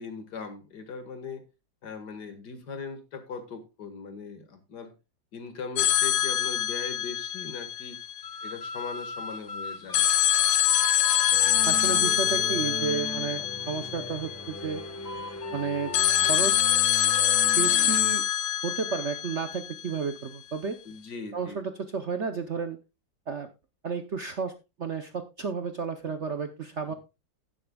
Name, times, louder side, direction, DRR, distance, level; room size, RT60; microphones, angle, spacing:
voice 1, 0.0-1.4 1.8-4.9 5.3-8.0 8.4-10.1 20.9-21.6 26.9-27.0, left 5 dB, 65° left, 8 dB, 2.2 m, -39 dB
sound 1, 5.8-8.7 9.9-14.9 15.9-20.1, left 12 dB, 80° left, 1.5 m, -25 dB
sound 2, 8.2-13.5 13.9-19.2, left 3 dB, 40° left, 0.5 m, -42 dB
sound 3, 11.3-18.2, equal, 10° left, 1.2 m, -39 dB
voice 2, 11.7-14.8 15.5-15.9 16.2-16.9 17.4-18.2 18.6-20.8 21.3-22.8 23.3-23.5 23.8-26.9, right 5 dB, 55° right, 8 dB, 0.8 m, -32 dB
16.5 x 7.7 x 2.3 m, 0.26 s
omnidirectional pair, 2.0 m